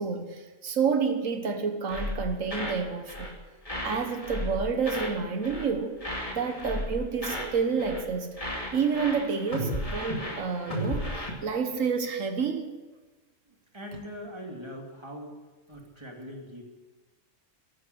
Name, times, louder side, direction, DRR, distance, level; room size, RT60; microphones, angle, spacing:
voice 1, 0.0-3.3 3.8-6.0 6.3-8.3 8.7-12.7, right 5 dB, 90° right, 7 dB, 1.7 m, -29 dB
sound 1, 1.9-3.4 3.6-5.2 5.4-5.7 6.0-7.5 7.8-8.1 8.4-11.3, equal, 25° left, 2.6 m, -34 dB
voice 2, 13.5-15.4 15.7-16.6, equal, 20° right, 0 dB, 2.7 m, -42 dB
14.0 x 12.0 x 8.3 m, 1.2 s
omnidirectional pair, 1.3 m